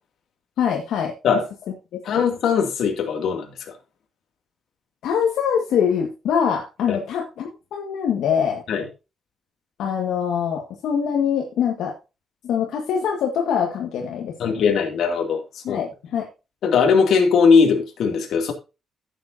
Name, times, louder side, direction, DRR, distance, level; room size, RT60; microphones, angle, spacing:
voice 1, 0.6-1.1 1.9-2.2 5.0-8.6 9.8-11.9 12.4-14.5 15.6-16.3, left 7 dB, 80° left, 1 dB, 1.7 m, -24 dB
voice 2, 2.0-3.5 6.9-7.0 8.7-8.9 14.4-15.4 15.7-15.8 16.6-18.5, left 5 dB, 60° left, 3 dB, 2.4 m, -19 dB
14.5 x 7.4 x 2.7 m, 0.28 s
cardioid pair, 165°, 0 cm